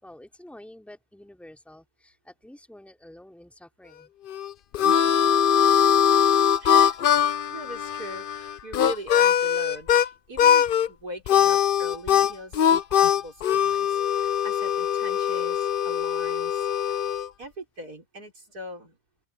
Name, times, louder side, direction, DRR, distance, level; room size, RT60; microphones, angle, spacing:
voice 1, 0.0-4.1, left 1 dB, ahead, 4.2 m, -48 dB
Harmonica, 4.3-10.1 10.4-10.9 11.3-17.3, left 9 dB, 75° left, 0.4 m, -21 dB
voice 2, 6.6-7.0 7.5-17.0 17.4-19.0, right 1 dB, 75° right, 6.6 m, -41 dB
open air
omnidirectional pair, 1.6 m